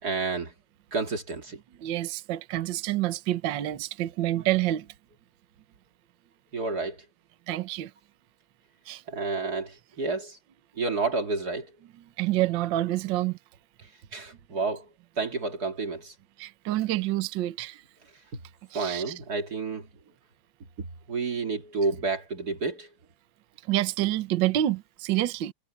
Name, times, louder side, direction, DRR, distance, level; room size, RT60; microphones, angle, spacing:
voice 1, 0.0-0.5 0.9-1.6 6.5-7.0 9.1-10.4 10.8-11.7 14.1-14.9 15.2-16.1 18.7-19.9 20.8-22.9, right 4 dB, 35° right, 2.2 m, -30 dB
voice 2, 1.8-4.9 7.5-7.9 8.9-9.0 12.2-13.4 16.4-17.8 18.7-19.0 23.7-25.5, right 14 dB, 65° right, 1.2 m, -27 dB
omnidirectional pair, 3.4 m